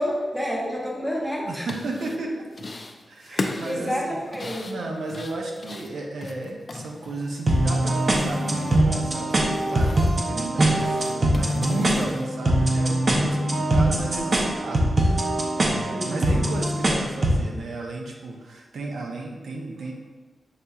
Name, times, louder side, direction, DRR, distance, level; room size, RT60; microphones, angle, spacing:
voice 1, 0.0-1.7 3.3-4.7 15.9-16.5, equal, 10° right, -3 dB, 0.8 m, -29 dB
sound 1, 1.4-2.2 2.5-3.0 3.2-7.5 7.8-8.8 9.1-10.2 10.6-12.3, left 2 dB, 40° left, 0.4 m, -35 dB
voice 2, 1.4-2.5 3.1-4.2 4.6-19.9, right 2 dB, 80° right, 0 dB, 0.6 m, -33 dB
sound 2, 7.5-17.4, right 1 dB, 40° right, 0.6 m, -22 dB
6.5 x 2.8 x 2.3 m, 1.3 s
wide cardioid pair, 110°, 0 cm